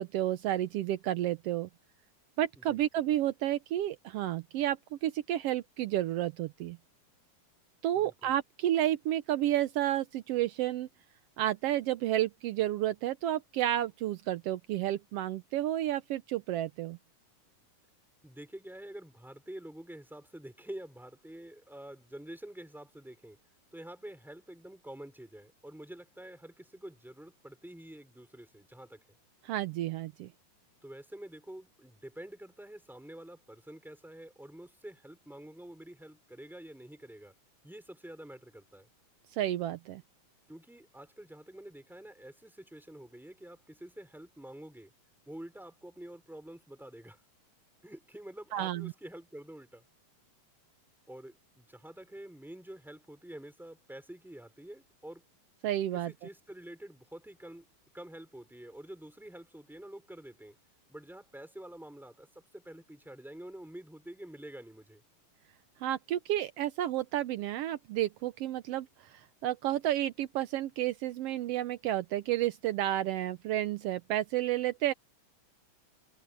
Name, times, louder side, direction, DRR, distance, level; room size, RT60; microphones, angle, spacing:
voice 1, 0.0-1.7 2.4-6.8 7.8-10.9 11.4-17.0 29.4-30.3 39.3-40.0 48.5-48.9 55.6-56.1 65.8-74.9, right 13 dB, 85° right, 1.3 m, -31 dB
voice 2, 7.9-8.3 18.2-23.4 23.7-29.0 30.8-37.3 37.6-38.9 40.5-44.9 45.3-47.2 47.8-49.8 51.1-55.2 55.9-57.7 57.9-60.6 60.9-62.3 62.5-65.0, right 1 dB, ahead, 3.6 m, -48 dB
omnidirectional pair, 3.6 m